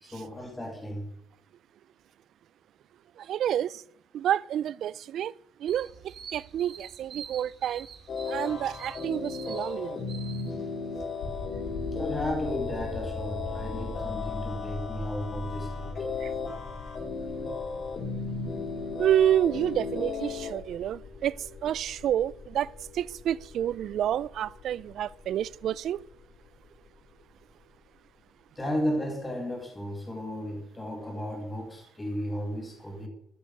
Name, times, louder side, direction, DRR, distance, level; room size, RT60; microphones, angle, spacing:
voice 1, 0.0-1.1 11.9-15.9 17.7-17.8 28.5-33.1, equal, 15° left, 2.4 m, -34 dB
voice 2, 3.2-3.8 4.1-5.3 5.6-7.9 8.3-10.0 16.2-16.3 19.0-26.0, right 11 dB, 55° right, 0.4 m, -29 dB
sound 1, 5.7-11.0, right 7 dB, 40° right, 3.0 m, -46 dB
sound 2, 8.1-20.5, left 4 dB, 40° left, 2.9 m, -35 dB
sound 3, 11.2-28.1, left 3 dB, 85° left, 5.2 m, -42 dB
13.5 x 10.0 x 8.1 m
cardioid pair, 155°, 0 cm